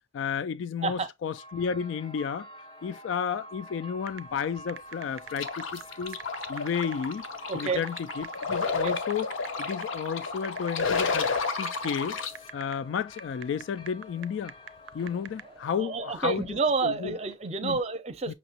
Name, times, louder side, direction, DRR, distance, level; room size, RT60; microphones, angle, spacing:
voice 1, 0.1-2.5 2.8-6.2 6.5-7.2 7.5-9.3 9.6-11.3 11.6-12.2 12.5-14.5 14.9-16.4 16.8-17.1 17.6-17.8 18.3-18.4, left 7 dB, 75° left, 0.3 m, -32 dB
sound 1, 1.3-17.7, equal, 25° left, 0.6 m, -47 dB
sound 2, 4.0-15.6, right 9 dB, 85° right, 0.4 m, -44 dB
sound 3, 5.4-12.3, left 4 dB, 90° left, 0.7 m, -31 dB
voice 2, 7.5-7.8 8.6-8.9 15.6-18.3, right 4 dB, 35° right, 0.5 m, -29 dB
6.1 x 2.9 x 2.7 m
head